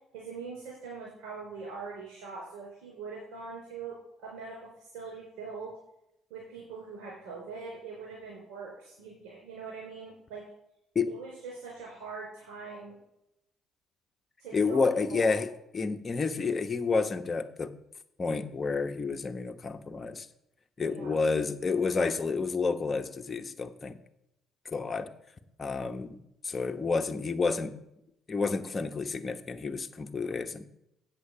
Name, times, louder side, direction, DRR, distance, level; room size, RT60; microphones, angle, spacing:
voice 1, 0.1-5.7 6.3-10.4 11.1-12.9 14.4-14.8 15.1-15.4 20.8-21.2, right 4 dB, 75° right, -2 dB, 3.9 m, -42 dB
voice 2, 14.5-15.5 15.7-17.7 18.2-20.3 20.8-24.0 24.6-25.1 25.6-27.8 28.3-30.7, left 4 dB, 35° left, 6 dB, 1.1 m, -30 dB
8.2 x 7.7 x 7.3 m, 0.84 s
supercardioid pair, 65°, 0 cm